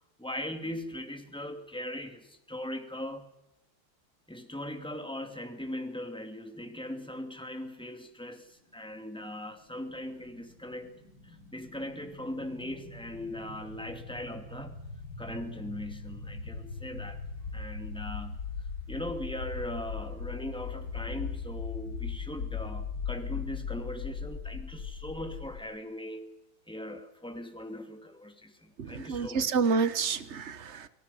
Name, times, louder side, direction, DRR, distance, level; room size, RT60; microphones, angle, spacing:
voice 1, 0.0-3.3 4.3-11.0 11.2-14.8 15.2-17.2 17.5-18.4 18.9-26.4 26.7-29.6, left 1 dB, ahead, 6 dB, 2.5 m, -40 dB
sound 1, 9.8-25.6, left 5 dB, 65° left, 8.0 m, -39 dB
voice 2, 28.8-30.9, right 5 dB, 35° right, 12 dB, 1.3 m, -29 dB
28.0 x 25.5 x 5.7 m, 0.88 s
omnidirectional pair, 2.4 m